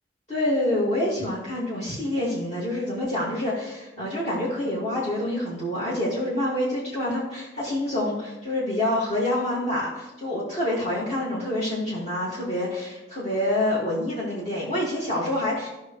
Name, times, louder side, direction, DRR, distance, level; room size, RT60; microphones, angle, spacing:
voice 1, 0.3-15.7, left 1 dB, 35° left, -7 dB, 2.4 m, -27 dB
15.5 x 5.7 x 3.3 m, 1.0 s
head